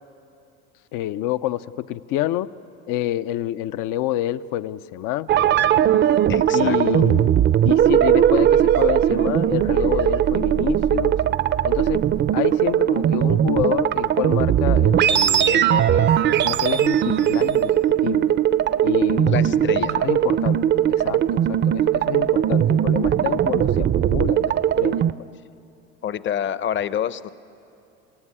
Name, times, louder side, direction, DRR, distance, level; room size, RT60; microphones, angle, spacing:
voice 1, 0.9-2.5 2.9-5.3 6.5-7.3 7.6-11.2 11.6-12.0 12.3-17.7 18.0-18.4 18.8-20.6 20.9-25.1, left 14 dB, 70° left, 14 dB, 0.7 m, -28 dB
sound 1, 5.3-25.1, right 10 dB, 35° right, 0.5 m, -19 dB
voice 2, 6.3-7.0 19.2-20.1 26.0-27.3, left 9 dB, 35° left, 15 dB, 0.8 m, -28 dB
27.5 x 15.0 x 9.8 m, 2.7 s
supercardioid pair, 105°, 33 cm